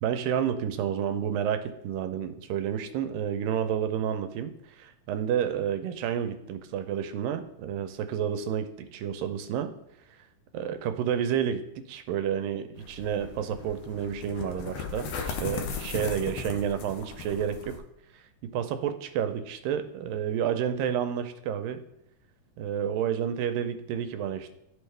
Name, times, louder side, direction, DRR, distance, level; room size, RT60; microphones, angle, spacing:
voice 1, 0.0-4.5 4.8-9.7 10.5-17.8 18.4-21.8 22.6-24.5, right 9 dB, 85° right, 9 dB, 2.3 m, -30 dB
sound 1, 12.8-17.8, left 5 dB, 75° left, 1.5 m, -37 dB
13.0 x 4.5 x 3.3 m, 0.81 s
omnidirectional pair, 3.9 m